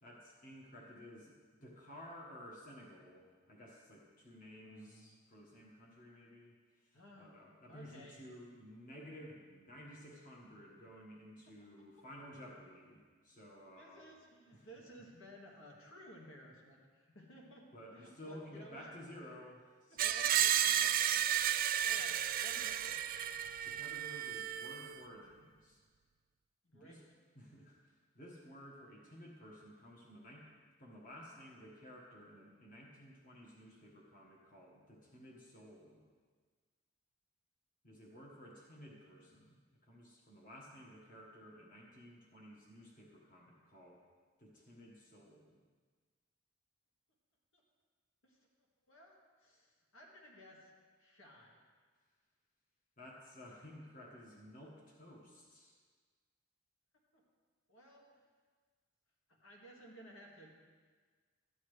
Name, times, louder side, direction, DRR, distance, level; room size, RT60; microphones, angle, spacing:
voice 1, 0.0-1.3 1.6-14.0 14.5-14.7 17.7-20.3 23.6-25.8 26.7-27.0 27.3-27.8 28.1-30.5 30.8-36.0 37.8-44.0 44.4-45.6 53.0-55.7, equal, 40° left, -3 dB, 1.6 m, -54 dB
voice 2, 4.6-5.1 6.9-7.3 7.7-8.2 11.5-11.7 13.8-18.9 19.9-21.5 21.8-23.4 26.6-27.0 47.5-47.6 48.2-48.5 48.9-50.7 51.0-51.6 57.1-57.2 57.7-58.3 59.3-60.6, equal, 85° left, -2 dB, 2.0 m, -57 dB
Screech, 20.0-24.9, right 10 dB, 45° right, 0.3 m, -33 dB
13.0 x 10.0 x 3.3 m, 1.5 s
head